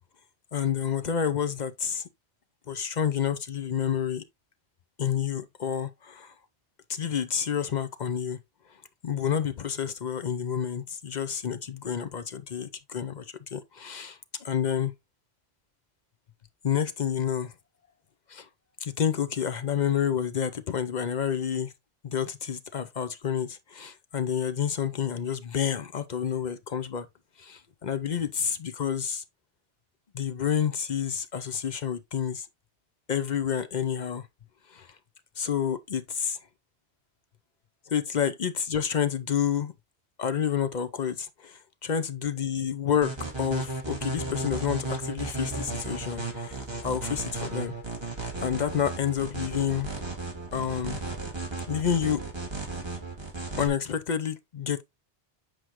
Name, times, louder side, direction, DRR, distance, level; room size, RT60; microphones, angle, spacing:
voice 1, 0.5-2.1 2.7-4.2 5.0-6.3 6.9-8.4 9.0-14.9 16.6-17.5 18.3-18.5 18.8-21.7 22.0-27.1 27.4-29.2 30.1-32.5 33.1-34.3 34.7-35.0 35.4-36.4 37.9-39.7 40.2-43.1 43.4-47.7 48.4-49.9 50.5-51.0 51.7-52.2 53.6-54.8, left 8 dB, 50° left, 0.6 m, -29 dB
sound 1, 43.0-53.7, right 3 dB, 25° right, 1.7 m, -34 dB
7.8 x 5.0 x 2.9 m
omnidirectional pair, 1.1 m